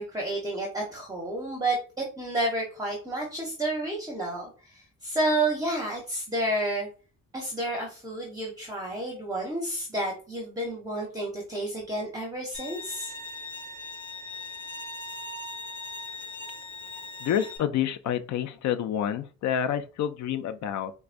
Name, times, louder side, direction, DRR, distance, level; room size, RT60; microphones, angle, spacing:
voice 1, 0.0-6.9 7.3-13.1, right 1 dB, 10° right, 0.7 m, -30 dB
Bowed string instrument, 12.5-17.6, left 3 dB, 35° left, 1.3 m, -39 dB
voice 2, 17.2-20.9, left 9 dB, 55° left, 0.5 m, -28 dB
4.6 x 2.1 x 2.5 m
cardioid pair, 145°, 33 cm